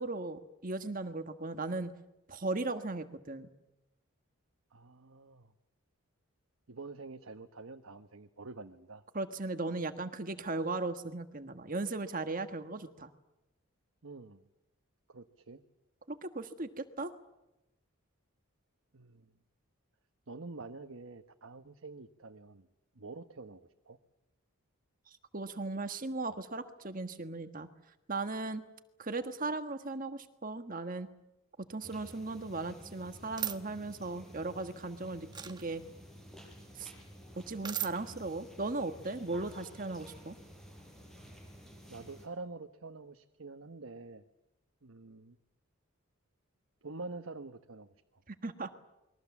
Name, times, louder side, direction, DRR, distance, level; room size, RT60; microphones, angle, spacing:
voice 1, 0.0-1.9 2.3-3.5 9.1-13.1 16.1-17.1 25.3-27.7 28.1-28.6 29.0-31.1 31.7-35.8 36.8-36.9 37.5-40.4 48.3-48.7, right 3 dB, 40° right, 9 dB, 1.4 m, -37 dB
voice 2, 4.7-5.5 6.7-9.0 14.0-14.4 15.1-15.6 18.9-19.3 20.3-22.7 22.9-24.0 41.9-44.2 44.8-45.4 46.8-48.2, right 3 dB, 70° right, 7 dB, 1.1 m, -47 dB
sound 1, 31.8-42.3, equal, ahead, 5.0 m, -53 dB
sound 2, 33.4-33.6 35.3-35.6 37.6-37.9, right 11 dB, 20° right, 1.0 m, -35 dB
29.0 x 22.0 x 7.2 m, 0.94 s
head